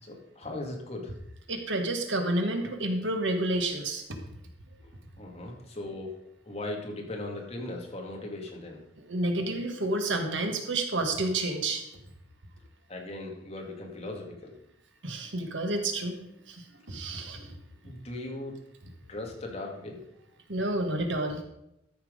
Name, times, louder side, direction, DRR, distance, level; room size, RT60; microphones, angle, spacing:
voice 1, 0.0-1.1 5.2-6.1 6.4-8.8 12.9-14.5 17.2-17.3 17.8-18.5 19.1-20.0, left 2 dB, 35° left, 0 dB, 2.2 m, -38 dB
voice 2, 1.5-4.2 9.1-11.8 15.0-16.2 16.5-16.6 16.9-17.5 20.5-21.4, right 2 dB, 75° right, 4 dB, 1.8 m, -29 dB
13.5 x 6.0 x 5.3 m, 0.83 s
head